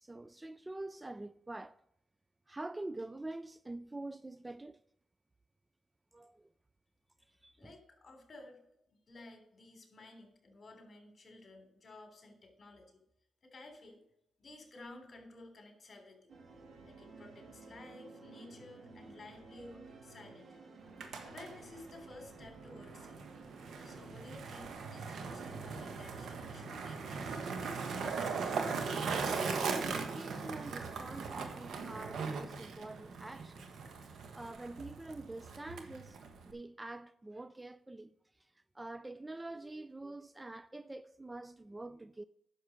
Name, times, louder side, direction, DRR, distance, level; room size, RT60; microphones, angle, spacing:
voice 1, 0.0-1.8 2.5-4.8 6.1-6.4 7.4-7.6 29.3-33.7 34.0-36.2 36.5-38.1 38.8-42.2, right 2 dB, 15° right, 0.4 m, -45 dB
voice 2, 7.6-8.6 9.1-12.9 13.4-14.0 14.4-16.3 16.8-20.6 21.2-23.2 23.8-27.4, left 2 dB, 40° left, 3.3 m, -54 dB
Railway Voyage Blustery Sea, 16.3-26.9, right 3 dB, 60° right, 1.9 m, -54 dB
Skateboard, 20.8-36.5, right 5 dB, 75° right, 1.4 m, -39 dB
10.5 x 6.7 x 6.3 m
cardioid pair, 85°, 0 cm